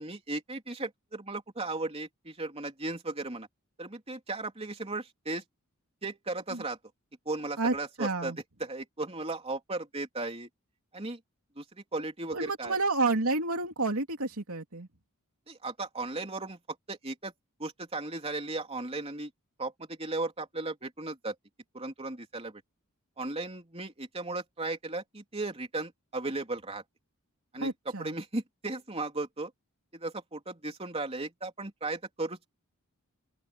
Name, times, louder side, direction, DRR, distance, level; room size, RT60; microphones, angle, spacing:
voice 1, 0.0-3.5 3.8-5.4 6.0-6.8 7.3-8.3 8.6-10.5 10.9-11.2 11.6-12.8 15.5-16.6 16.9-17.3 17.6-19.3 19.6-21.4 21.7-22.6 23.2-26.8 27.5-27.7 28.0-29.5 29.9-32.5, right 2 dB, 30° right, 3.5 m, -36 dB
voice 2, 7.6-8.4 12.3-14.9 27.5-28.1, right 3 dB, 75° right, 3.0 m, -30 dB
open air
head